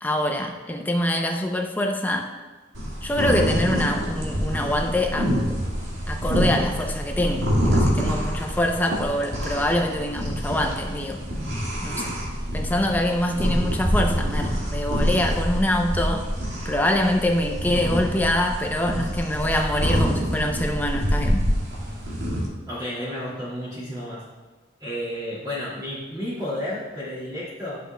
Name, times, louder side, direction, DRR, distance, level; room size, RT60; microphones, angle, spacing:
voice 1, 0.0-2.3 3.0-5.6 6.1-11.2 11.8-12.1 12.5-16.3 16.6-21.5, left 1 dB, 10° left, 3 dB, 0.5 m, -25 dB
sound 1, 2.7-22.4, equal, 75° right, 1.7 m, -26 dB
voice 2, 22.7-24.2 24.8-27.8, left 1 dB, 20° right, -9 dB, 2.3 m, -31 dB
11.5 x 6.7 x 2.2 m, 1.3 s
head